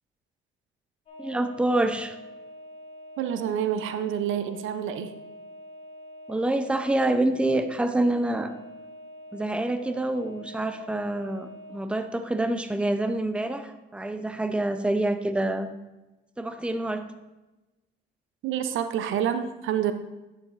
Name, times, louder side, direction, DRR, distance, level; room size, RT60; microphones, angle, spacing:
sound 1, 1.0-11.8, equal, 30° left, 3.0 m, -45 dB
voice 1, 1.2-2.2 6.3-8.5 9.3-15.7 16.4-17.1, right 1 dB, 5° right, 9 dB, 0.6 m, -27 dB
voice 2, 3.2-5.1 18.4-19.9, right 9 dB, 80° right, 10 dB, 0.6 m, -28 dB
10.5 x 7.1 x 2.5 m, 1.1 s
cardioid pair, 90°, 20 cm